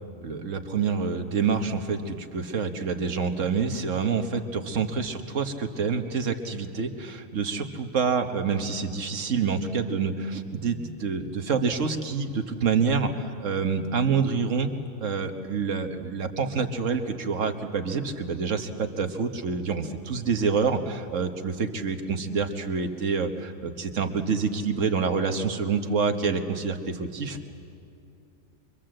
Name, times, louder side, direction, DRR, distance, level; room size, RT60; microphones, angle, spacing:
voice 1, 0.2-14.7 15.0-27.4, right 5 dB, 60° right, 6 dB, 1.6 m, -27 dB
24.5 x 24.0 x 7.7 m, 2.6 s
omnidirectional pair, 1.5 m